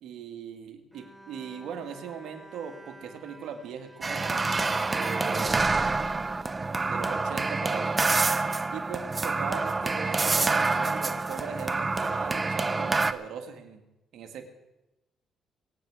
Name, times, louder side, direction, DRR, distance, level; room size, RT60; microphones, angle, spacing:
voice 1, 0.0-4.5 4.9-6.0 6.9-8.0 8.7-13.8 14.1-14.5, right 7 dB, 75° right, 5 dB, 2.0 m, -39 dB
Bowed string instrument, 0.9-8.3, right 1 dB, 10° right, 2.6 m, -51 dB
sound 1, 4.0-13.1, right 3 dB, 25° right, 0.8 m, -27 dB
22.5 x 9.3 x 4.9 m, 0.97 s
cardioid pair, 80°, 0 cm